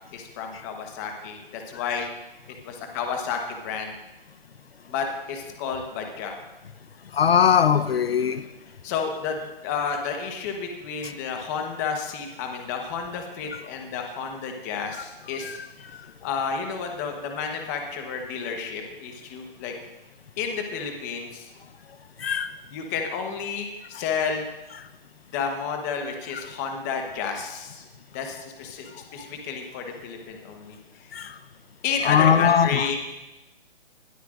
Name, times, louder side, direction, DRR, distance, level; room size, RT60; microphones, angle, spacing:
voice 1, 0.1-2.1 2.6-3.9 4.9-6.4 8.1-8.4 8.8-15.6 16.2-19.7 20.4-21.5 22.7-24.5 25.3-27.8 28.1-31.1 31.8-33.0, left 6 dB, 20° left, 4 dB, 1.1 m, -31 dB
voice 2, 7.2-8.4 22.2-22.5 31.2-31.3 32.1-32.8, left 7 dB, 90° left, 12 dB, 0.8 m, -19 dB
20.0 x 12.5 x 2.5 m, 1.0 s
hypercardioid pair, 165°, 29 cm